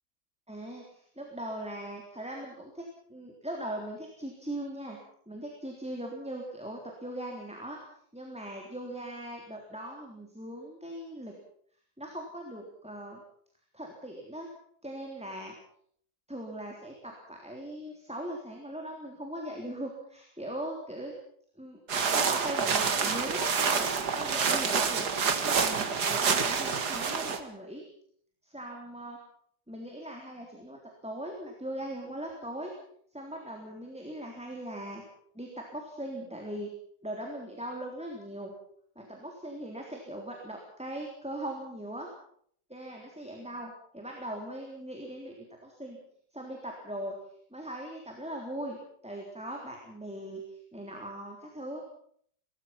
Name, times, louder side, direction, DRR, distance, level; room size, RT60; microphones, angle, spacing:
voice 1, 0.5-5.0 5.3-7.8 8.1-11.3 12.0-13.2 13.7-14.5 14.8-15.5 16.3-21.1 21.6-21.8 22.1-27.8 28.4-29.2 29.7-32.7 33.1-35.0 35.3-36.7 37.0-38.5 39.0-42.1 42.7-46.0 46.3-47.2 47.5-48.8 49.0-51.8, right 1 dB, 5° right, 0 dB, 3.5 m, -40 dB
sound 1, 21.9-27.4, right 5 dB, 55° right, 2.3 m, -27 dB
23.5 x 20.0 x 6.0 m, 0.63 s
omnidirectional pair, 2.1 m